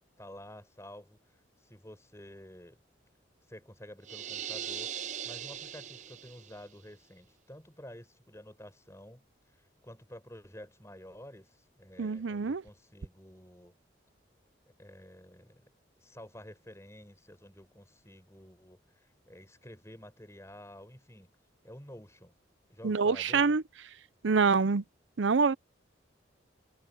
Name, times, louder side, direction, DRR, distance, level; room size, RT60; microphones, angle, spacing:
voice 1, 0.2-2.8 3.5-9.2 9.6-13.7 14.6-15.7 16.0-21.3 21.6-22.3 22.7-23.6, equal, 15° left, 6.3 m, -50 dB
sound 1, 4.0-6.6, right 9 dB, 40° right, 0.6 m, -40 dB
voice 2, 12.0-12.6 22.8-23.6 24.2-24.8 25.2-25.6, right 5 dB, 80° right, 0.6 m, -26 dB
head